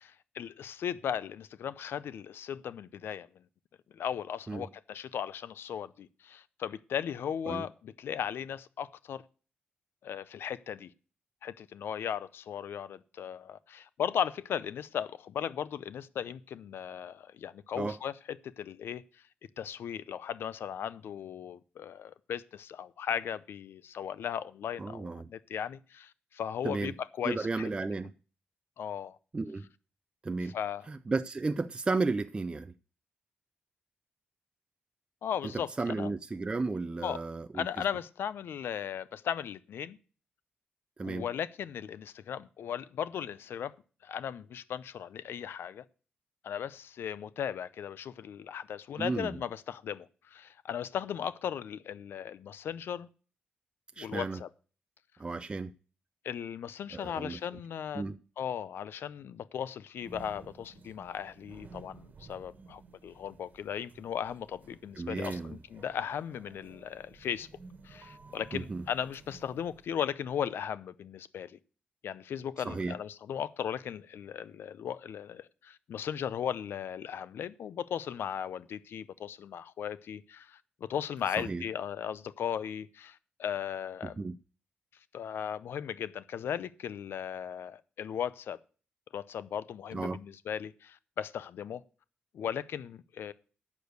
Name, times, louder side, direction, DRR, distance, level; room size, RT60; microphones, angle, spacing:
voice 1, 0.0-3.3 3.9-9.2 10.0-10.9 11.4-19.0 19.6-27.7 28.8-29.2 30.4-30.9 35.2-36.1 37.0-37.2 37.5-40.0 41.0-43.7 44.0-45.8 46.4-53.1 54.0-54.5 56.2-58.0 58.4-67.5 67.8-71.6 72.0-84.2 85.1-88.6 89.1-91.8 92.3-93.3, left 8 dB, 80° left, 0.6 m, -37 dB
voice 2, 24.8-25.3 26.6-26.9 27.2-28.1 29.3-29.7 30.2-30.5 30.9-32.7 35.4-37.8 41.0-41.3 49.0-49.3 54.0-54.4 55.2-55.7 56.9-57.4 57.9-58.2 65.0-65.6 68.5-68.8 72.6-73.0 81.4-81.6 84.0-84.4 89.9-90.2, right 3 dB, 25° right, 0.4 m, -33 dB
sound 1, 60.0-70.2, right 4 dB, 45° right, 1.4 m, -54 dB
8.4 x 6.8 x 8.0 m
cardioid pair, 105°, 4 cm